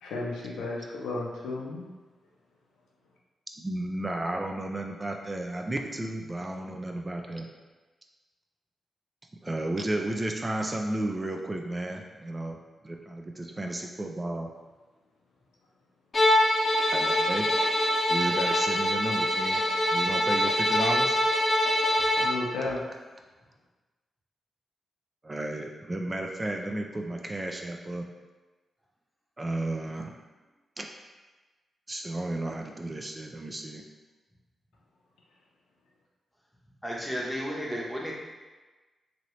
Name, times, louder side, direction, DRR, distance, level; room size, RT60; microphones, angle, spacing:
voice 1, 0.0-1.8 22.2-22.8, left 2 dB, 90° left, -3 dB, 0.5 m, -33 dB
voice 2, 3.6-7.5 9.4-12.6 12.8-14.5 16.9-17.5 18.1-19.6 19.9-21.2 25.2-28.1 29.4-30.1 30.8-30.9 31.9-33.8, right 1 dB, 30° right, 2 dB, 0.4 m, -33 dB
Bowed string instrument, 16.1-22.4, left 1 dB, 50° left, 0.6 m, -24 dB
voice 3, 36.8-38.1, equal, ahead, -4 dB, 0.9 m, -33 dB
2.8 x 2.7 x 3.1 m, 1.2 s
supercardioid pair, 45°, 0 cm